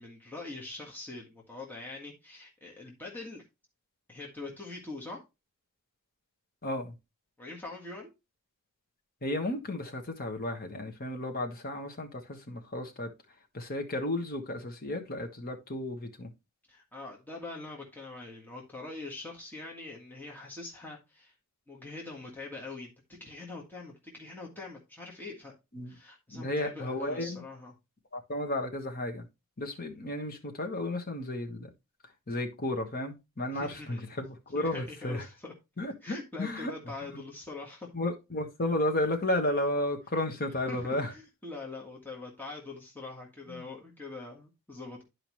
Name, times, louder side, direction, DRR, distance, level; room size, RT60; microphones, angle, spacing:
voice 1, 0.0-3.4 4.1-5.2 7.4-8.1 16.7-21.3 21.7-25.5 25.9-27.7 33.5-34.1 34.5-35.5 36.0-37.9 40.7-45.0, left 3 dB, 10° left, 1.6 m, -43 dB
voice 2, 6.6-6.9 9.2-13.1 13.5-16.3 25.7-26.0 26.3-27.4 28.1-29.3 29.6-31.7 32.3-35.2 35.8-36.7 37.1-37.2 37.9-41.1 43.5-43.7, left 1 dB, 40° left, 1.4 m, -33 dB
10.5 x 4.9 x 3.1 m
head